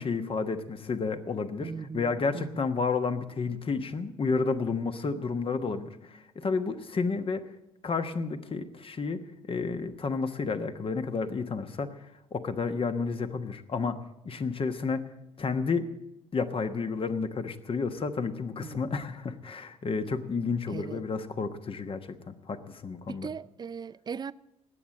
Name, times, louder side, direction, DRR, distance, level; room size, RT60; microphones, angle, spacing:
voice 1, 0.0-7.4 7.8-9.2 9.5-11.9 12.3-15.0 15.4-15.9 16.3-23.3, left 4 dB, 35° left, 1.2 m, -31 dB
voice 2, 1.6-2.7 18.6-19.0 20.7-21.0 23.1-24.3, right 6 dB, 25° right, 0.5 m, -39 dB
20.0 x 8.3 x 7.5 m
figure-of-eight pair, 45°, 16 cm